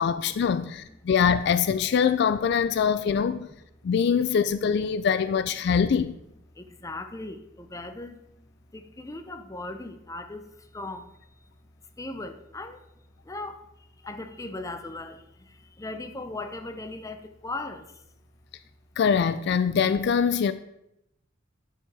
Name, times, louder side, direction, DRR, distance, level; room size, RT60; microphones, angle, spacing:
voice 1, 0.0-3.5 3.8-6.1 19.0-20.5, left 6 dB, 60° left, 0.3 m, -23 dB
voice 2, 0.5-1.0 3.0-3.1 4.2-4.3 5.6-5.7 6.6-11.2 12.0-12.9 13.2-18.0, left 2 dB, 15° left, 0.6 m, -39 dB
9.0 x 4.7 x 4.7 m
head